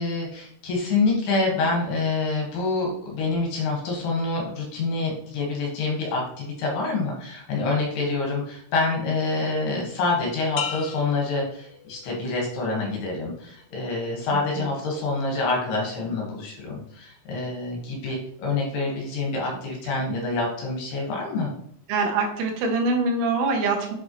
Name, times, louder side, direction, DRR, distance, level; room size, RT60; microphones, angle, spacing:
voice 1, 0.0-21.5, left 3 dB, 65° left, -1 dB, 3.2 m, -26 dB
sound 1, 10.6-12.3 12.8-13.3, left 9 dB, 85° left, 2.7 m, -36 dB
voice 2, 14.3-14.7 21.9-24.0, right 3 dB, 85° right, 3 dB, 3.5 m, -24 dB
7.7 x 5.3 x 3.0 m, 0.68 s
omnidirectional pair, 5.4 m